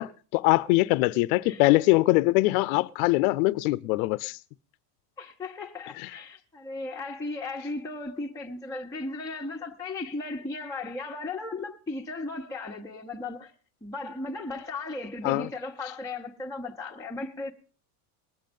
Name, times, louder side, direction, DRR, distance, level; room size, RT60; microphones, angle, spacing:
voice 1, 0.0-4.4 5.9-6.2 15.2-15.5, left 20 dB, 80° left, 0.7 m, -23 dB
voice 2, 5.2-13.5 13.8-17.5, left 2 dB, 10° left, 1.2 m, -36 dB
20.5 x 7.6 x 5.3 m
cardioid pair, 145°, 42 cm